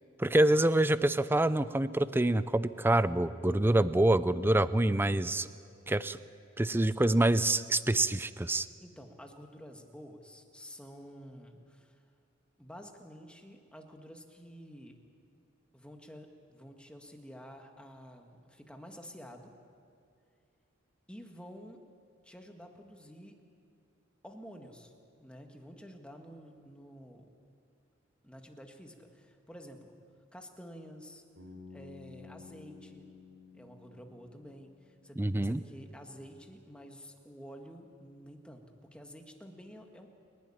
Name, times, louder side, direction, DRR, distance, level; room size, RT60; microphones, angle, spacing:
voice 1, 0.2-5.5 5.9-6.2 6.6-8.7 35.2-35.6, right 1 dB, 10° right, 15 dB, 0.5 m, -26 dB
voice 2, 8.8-12.0 12.6-15.0 15.7-19.6 21.1-21.8 22.2-23.4 24.2-24.9 25.2-27.3 28.2-30.0 30.3-31.2 31.7-33.1 33.5-40.1, equal, 5° left, 3 dB, 1.7 m, -50 dB
Bass guitar, 31.4-35.3, left 4 dB, 85° right, 5.8 m, -53 dB
29.0 x 11.5 x 9.9 m, 2.4 s
head